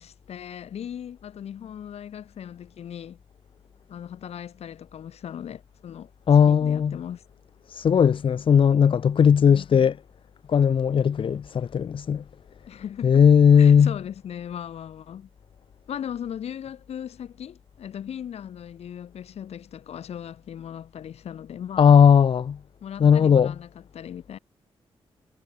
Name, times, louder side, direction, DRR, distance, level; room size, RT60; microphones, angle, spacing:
voice 1, 0.0-3.2 3.9-6.1 6.5-7.2 9.5-9.9 12.7-13.2 13.5-15.3 15.9-22.0 22.8-24.4, left 9 dB, 75° left, 1.4 m, -38 dB
voice 2, 6.3-7.0 7.7-9.9 10.5-12.2 13.0-13.9 21.8-22.6 23.0-23.5, left 7 dB, 55° left, 0.6 m, -17 dB
cardioid pair, 70°, 11 cm